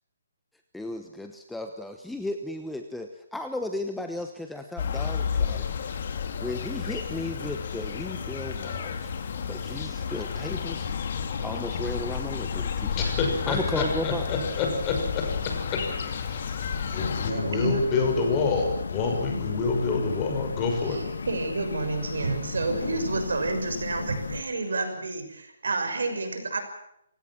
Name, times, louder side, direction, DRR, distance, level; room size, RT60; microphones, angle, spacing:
voice 1, 0.7-5.7 6.4-9.1 9.5-10.9 11.4-13.1 13.5-14.3, left 1 dB, ahead, 5 dB, 1.1 m, -35 dB
sound 1, 4.8-17.3, left 6 dB, 50° left, 2.9 m, -31 dB
voice 2, 13.0-14.9 16.0-16.5 16.9-21.0, left 4 dB, 20° left, 2 dB, 5.9 m, -27 dB
sound 2, 17.0-24.4, left 5 dB, 75° left, 1.7 m, -34 dB
voice 3, 17.0-17.9 20.8-26.6, right 3 dB, 80° right, 7 dB, 6.3 m, -30 dB
27.0 x 17.0 x 7.4 m, 0.77 s
hypercardioid pair, 165°, 0 cm